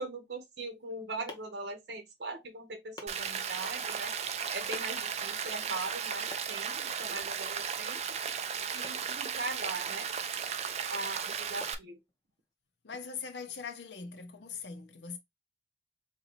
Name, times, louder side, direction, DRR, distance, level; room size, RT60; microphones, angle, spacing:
voice 1, 0.0-4.1 4.5-8.2 8.7-10.1 10.9-12.0, right 2 dB, 65° right, 0.8 m, -40 dB
sound 1, 0.6-12.5, left 2 dB, 20° left, 0.7 m, -55 dB
Rain, 3.1-11.7, right 7 dB, 35° right, 0.4 m, -35 dB
voice 2, 12.8-15.2, left 6 dB, 80° left, 0.6 m, -41 dB
3.8 x 2.7 x 3.0 m
head